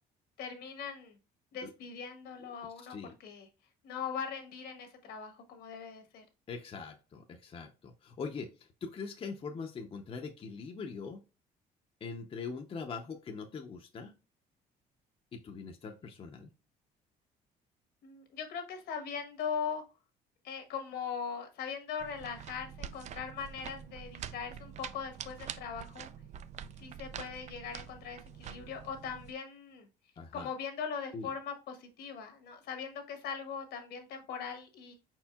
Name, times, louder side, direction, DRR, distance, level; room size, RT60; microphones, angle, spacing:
voice 1, 0.4-1.2 1.5-2.9 3.2-3.5 3.8-6.2 18.0-19.8 20.4-26.1 26.8-29.9 30.3-34.9, left 6 dB, 75° left, 1.3 m, -40 dB
voice 2, 2.8-3.1 6.5-11.2 12.0-14.1 15.3-16.5 30.2-30.5 31.1-31.3, left 5 dB, 35° left, 0.6 m, -42 dB
sound 1, 22.0-29.3, right 9 dB, 45° right, 0.4 m, -46 dB
4.9 x 4.5 x 2.3 m
cardioid pair, 110°, 17 cm